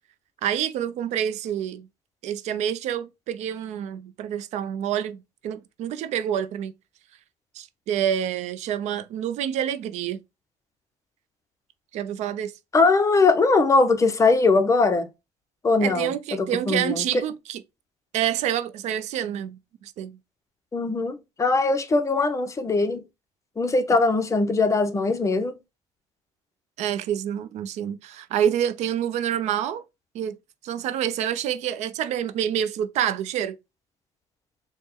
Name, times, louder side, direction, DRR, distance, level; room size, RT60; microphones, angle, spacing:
voice 1, 0.4-1.9 2.2-6.7 7.5-10.2 11.9-12.5 15.8-17.6 18.1-20.2 26.8-29.8 30.1-30.4 30.6-33.6, right 10 dB, 70° right, 0.4 m, -27 dB
voice 2, 12.7-15.1 15.6-17.2 20.7-23.0 23.6-25.6, left 3 dB, 25° left, 0.6 m, -21 dB
4.2 x 2.1 x 3.4 m
cardioid pair, 100°, 12 cm